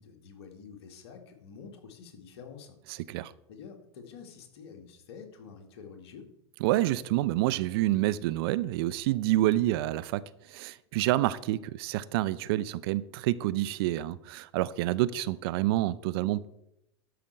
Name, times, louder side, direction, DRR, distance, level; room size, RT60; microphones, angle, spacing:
voice 1, 0.0-2.8 3.5-6.3, left 6 dB, 65° left, 1.8 m, -48 dB
voice 2, 6.6-16.4, right 15 dB, 60° right, 0.5 m, -28 dB
12.5 x 5.2 x 4.5 m
hypercardioid pair, 95°, 15 cm